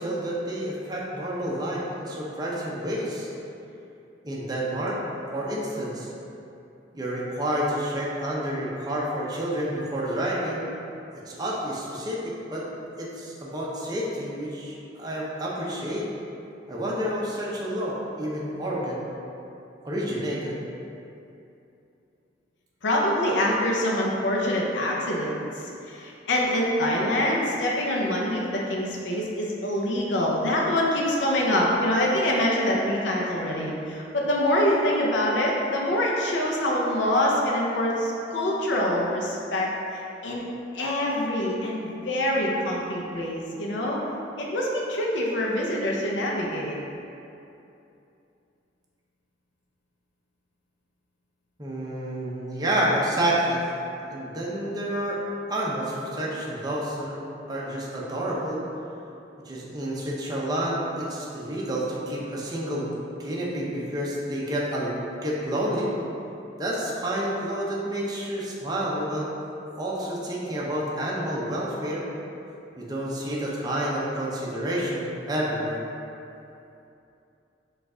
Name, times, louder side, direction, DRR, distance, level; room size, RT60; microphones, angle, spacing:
voice 1, 0.0-3.3 4.2-5.0 5.3-6.1 6.9-10.7 11.3-12.7 13.0-16.1 16.7-19.0 19.8-20.6 51.6-53.6 54.1-55.2 55.5-57.2 57.5-58.6 59.5-62.9 63.2-65.9 66.6-69.3 69.8-72.0 72.8-75.8, right 1 dB, 20° right, -5 dB, 0.6 m, -29 dB
voice 2, 22.8-40.4 40.7-44.0 44.4-46.8, left 1 dB, 70° left, -3 dB, 0.5 m, -25 dB
5.0 x 2.4 x 3.6 m, 2.8 s
head